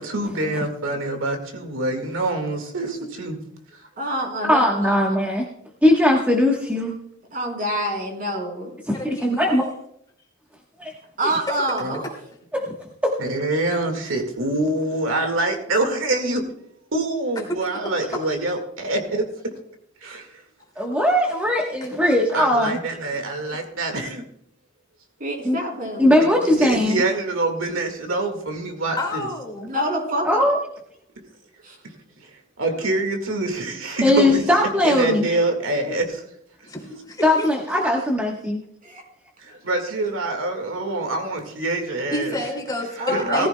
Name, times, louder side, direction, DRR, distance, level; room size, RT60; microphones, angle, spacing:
voice 1, 0.0-3.4 11.8-11.9 13.2-16.4 16.9-19.3 20.0-20.3 22.3-24.2 26.5-29.3 32.6-34.4 34.8-36.2 36.9-37.0 39.4-42.4 43.1-43.5, right 2 dB, 75° right, 5 dB, 1.9 m, -25 dB
voice 2, 4.0-5.2 7.3-8.7 11.2-12.1 25.2-26.4 29.7-30.4 31.6-31.7 38.8-39.0 43.0-43.5, right 1 dB, 45° right, 0 dB, 3.7 m, -27 dB
voice 3, 4.5-5.5 5.8-6.9 8.9-9.6 10.8-10.9 12.7-12.8 13.0-13.1 20.8-22.8 25.4-25.6 26.0-27.0 30.2-30.6 34.0-35.3 37.2-38.6, left 1 dB, 10° right, -2 dB, 1.2 m, -19 dB
voice 4, 8.9-9.7 11.2-11.6 17.5-17.6 29.0-29.7 36.6-37.5 42.1-43.5, left 1 dB, 20° left, 0 dB, 2.6 m, -30 dB
18.5 x 14.0 x 2.2 m, 0.72 s
head